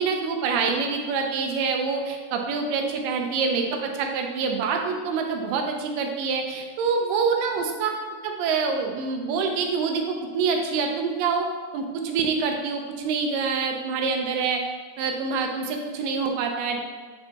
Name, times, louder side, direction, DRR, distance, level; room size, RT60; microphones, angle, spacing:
voice 1, 0.0-7.9 8.2-11.5 11.7-14.6 15.0-16.8, right 5 dB, 90° right, 3 dB, 2.3 m, -26 dB
7.6 x 4.3 x 2.9 m, 1.5 s
omnidirectional pair, 3.8 m